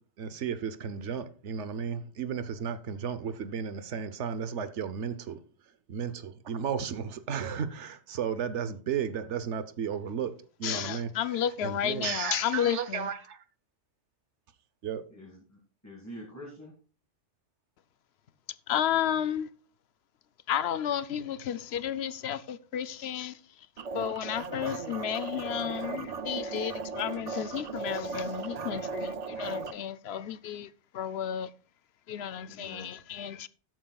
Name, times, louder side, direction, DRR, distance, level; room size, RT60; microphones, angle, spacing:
voice 1, 0.2-5.4 5.9-10.3 10.6-13.4 14.8-15.0, right 7 dB, 80° right, 1.1 m, -34 dB
voice 2, 10.6-13.1 18.7-19.5 20.5-23.4 23.9-31.5 32.1-33.5, left 9 dB, 70° left, 0.8 m, -32 dB
voice 3, 15.1-16.7 32.4-32.9, equal, 15° left, 1.8 m, -46 dB
sound 1, 23.8-29.7, right 4 dB, 45° right, 0.5 m, -36 dB
13.5 x 9.2 x 2.3 m
omnidirectional pair, 1.2 m